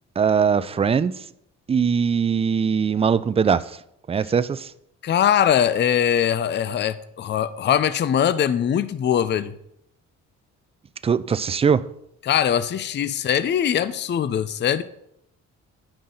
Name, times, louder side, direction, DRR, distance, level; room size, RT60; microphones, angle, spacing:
voice 1, 0.2-1.2 1.7-3.8 4.1-4.7 11.0-11.8, right 6 dB, 20° right, 0.3 m, -21 dB
voice 2, 5.0-9.5 12.2-14.8, left 9 dB, 35° left, 0.5 m, -21 dB
10.5 x 5.5 x 3.8 m
cardioid pair, 90°, 30 cm